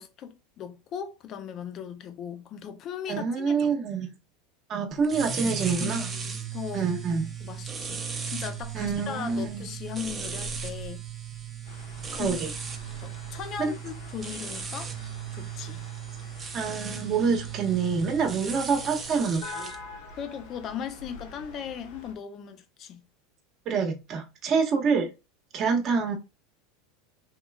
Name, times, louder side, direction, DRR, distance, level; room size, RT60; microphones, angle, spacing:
voice 1, 0.0-3.7 5.8-6.9 7.4-11.0 12.2-12.4 13.0-14.9 15.4-15.8 20.2-23.0 24.5-24.6, left 8 dB, 45° left, 0.7 m, -38 dB
voice 2, 3.1-4.1 4.7-6.1 6.7-7.3 8.7-9.7 12.1-12.5 13.6-13.7 16.5-19.7 23.7-25.1 25.5-26.2, right 5 dB, 40° right, 1.2 m, -26 dB
sound 1, 5.0-19.8, right 6 dB, 25° right, 0.9 m, -37 dB
sound 2, 11.6-22.1, left 2 dB, 75° left, 1.4 m, -46 dB
3.7 x 3.0 x 2.3 m
hypercardioid pair, 95°, 0 cm